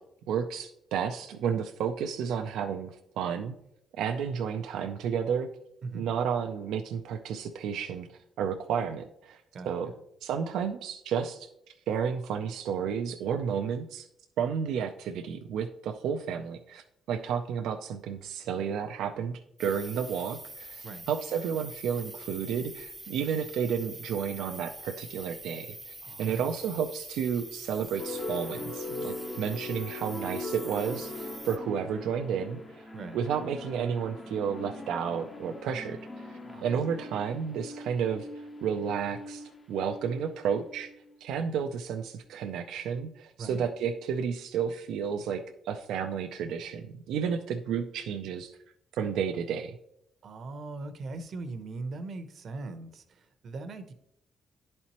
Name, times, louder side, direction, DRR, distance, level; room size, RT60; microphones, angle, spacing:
voice 1, 0.3-3.6 4.0-5.5 5.9-9.9 10.2-11.5 11.9-14.1 14.4-40.9 41.2-48.6 48.9-49.8, right 7 dB, 85° right, 4 dB, 0.4 m, -32 dB
voice 2, 9.5-9.9 20.8-21.1 26.0-26.6 32.9-33.2 36.4-36.7 43.4-43.6 50.2-53.9, right 3 dB, 60° right, 8 dB, 0.8 m, -40 dB
sound 1, 19.6-31.6, right 2 dB, 15° right, 0.6 m, -45 dB
sound 2, 28.0-41.3, left 2 dB, 30° left, 0.7 m, -41 dB
11.0 x 4.3 x 2.9 m, 0.79 s
cardioid pair, 90°, 0 cm